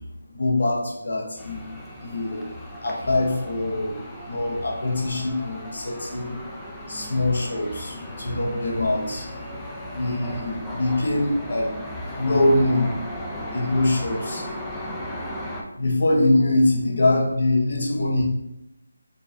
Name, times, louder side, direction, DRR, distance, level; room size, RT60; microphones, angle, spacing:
voice 1, 0.3-1.6 2.0-2.5 2.8-3.9 4.3-6.4 6.9-9.3 9.9-11.8 12.1-12.9 13.5-14.5 15.0-15.1 15.8-18.2, left 2 dB, 60° left, -1 dB, 0.8 m, -23 dB
sound 1, 1.4-15.6, left 1 dB, 5° left, 0.4 m, -36 dB
5.0 x 2.5 x 3.3 m, 0.85 s
figure-of-eight pair, 175°, 0 cm